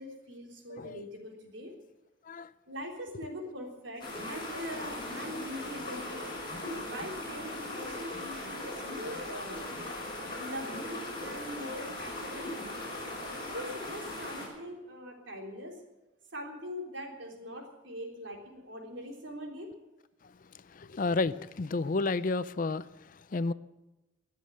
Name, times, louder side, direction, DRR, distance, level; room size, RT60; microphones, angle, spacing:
voice 1, 0.0-1.7 2.7-6.4 6.8-9.6 10.4-12.5 13.5-15.8 16.3-19.7, equal, 65° right, 3.6 m, -42 dB
sound 1, 4.0-14.5, left 1 dB, 25° left, 5.6 m, -39 dB
voice 2, 20.7-23.5, left 3 dB, 40° left, 0.4 m, -31 dB
20.5 x 7.6 x 8.5 m
head